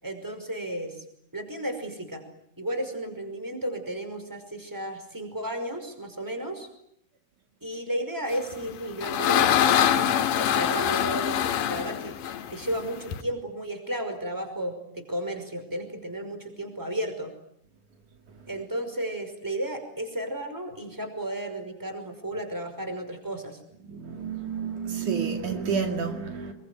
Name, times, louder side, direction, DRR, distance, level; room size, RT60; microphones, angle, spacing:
voice 1, 0.0-1.0 1.3-2.2 2.6-6.7 7.6-9.5 9.9-11.4 11.7-12.1 12.5-17.3 18.5-23.6, right 1 dB, 5° right, 7 dB, 5.3 m, -33 dB
sound 1, 8.5-13.2, left 10 dB, 85° left, 3.1 m, -24 dB
voice 2, 23.9-26.5, right 6 dB, 65° right, 5 dB, 3.8 m, -30 dB
27.0 x 23.0 x 9.5 m, 0.74 s
omnidirectional pair, 3.8 m